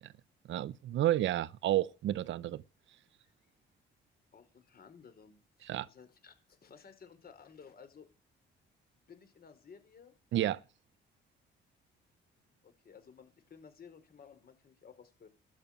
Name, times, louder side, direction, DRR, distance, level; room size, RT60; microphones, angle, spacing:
voice 1, 0.5-2.6 5.7-5.9 10.3-10.6, right 13 dB, 70° right, 0.7 m, -30 dB
voice 2, 4.3-8.1 9.1-10.1 12.6-15.3, left 6 dB, 50° left, 4.5 m, -56 dB
12.5 x 10.5 x 8.7 m
cardioid pair, 90°, 20 cm